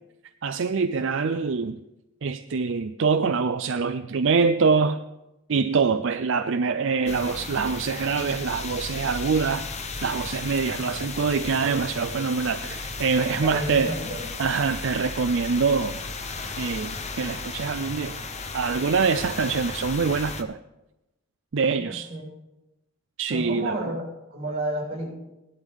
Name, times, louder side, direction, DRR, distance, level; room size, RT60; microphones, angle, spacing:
voice 1, 0.4-1.8 2.2-5.0 5.5-13.9 14.4-16.0 16.6-18.2 18.5-20.6 21.5-22.1 23.2-23.9, right 5 dB, 55° right, 9 dB, 0.4 m, -25 dB
sound 1, 7.1-20.4, left 4 dB, 30° left, 0.8 m, -35 dB
voice 2, 13.3-14.2 21.7-22.3 23.3-25.1, right 1 dB, 30° right, -2 dB, 6.2 m, -31 dB
17.5 x 11.5 x 3.6 m, 0.94 s
head